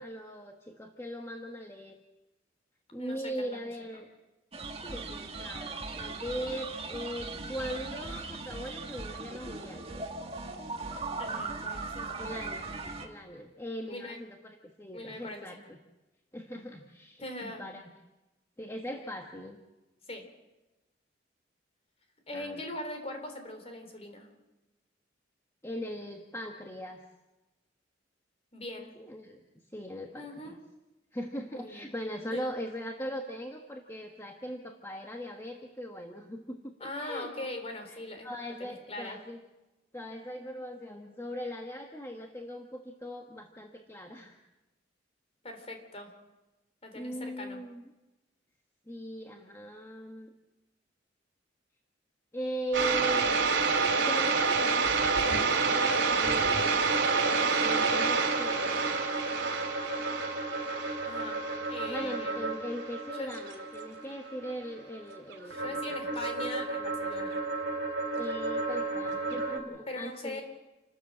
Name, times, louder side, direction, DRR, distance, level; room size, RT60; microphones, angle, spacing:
voice 1, 0.0-2.0 2.9-4.1 4.8-9.9 12.2-12.8 13.0-15.8 16.3-17.8 18.6-19.6 22.3-22.6 25.6-27.0 29.0-29.4 29.7-30.6 31.1-37.3 37.9-39.4 39.9-44.4 46.9-47.9 48.9-50.3 52.3-53.4 54.0-56.8 57.6-58.8 61.9-65.8 68.1-70.4, equal, 15° left, 2 dB, 1.4 m, -40 dB
voice 2, 3.0-3.7 11.2-12.2 13.9-14.2 14.9-15.6 17.2-17.6 20.1-20.3 22.3-24.3 28.5-28.9 30.1-30.5 31.5-31.9 32.2-32.5 36.8-38.3 38.6-39.2 45.4-46.1 46.8-47.6 61.0-61.4 61.7-62.5 63.2-63.3 65.5-67.4 69.9-70.4, left 1 dB, 35° left, 6 dB, 3.7 m, -41 dB
sound 1, 4.5-13.1, right 3 dB, 30° right, 1.9 m, -39 dB
sound 2, 52.7-69.6, right 4 dB, 70° right, 3.4 m, -29 dB
28.5 x 13.5 x 7.6 m, 1.1 s
head